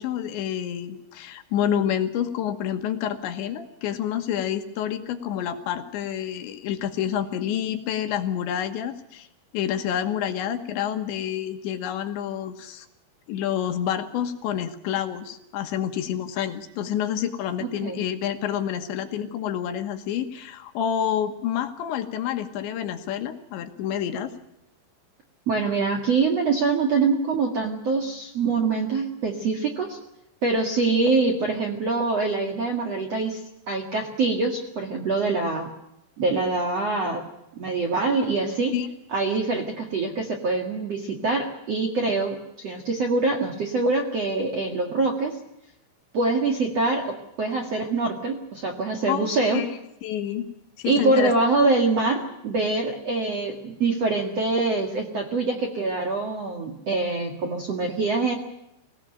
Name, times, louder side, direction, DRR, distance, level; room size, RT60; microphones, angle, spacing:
voice 1, 0.0-9.3 9.5-12.9 13.3-24.3 38.7-38.9 49.1-49.7 50.0-50.5 50.8-51.3, left 9 dB, 70° left, 7 dB, 3.4 m, -28 dB
voice 2, 25.5-30.0 30.4-33.4 33.7-35.7 36.2-37.3 37.6-38.8 39.1-45.4 46.1-49.6 50.9-58.3, right 3 dB, 50° right, 3 dB, 1.9 m, -24 dB
25.0 x 17.5 x 9.0 m, 0.86 s
omnidirectional pair, 5.7 m